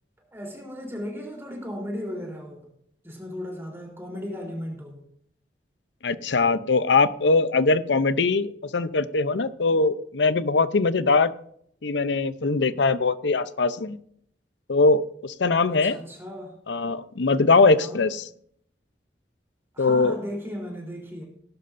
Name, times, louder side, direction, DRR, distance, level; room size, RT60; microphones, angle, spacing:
voice 1, 0.2-2.7 3.0-5.0 15.7-16.5 17.7-18.0 19.7-21.2, equal, 15° right, -1 dB, 3.5 m, -36 dB
voice 2, 6.0-11.3 11.8-14.0 14.7-16.0 16.7-18.2 19.8-20.2, left 3 dB, 85° left, 14 dB, 0.6 m, -21 dB
18.5 x 11.0 x 2.6 m, 0.68 s
head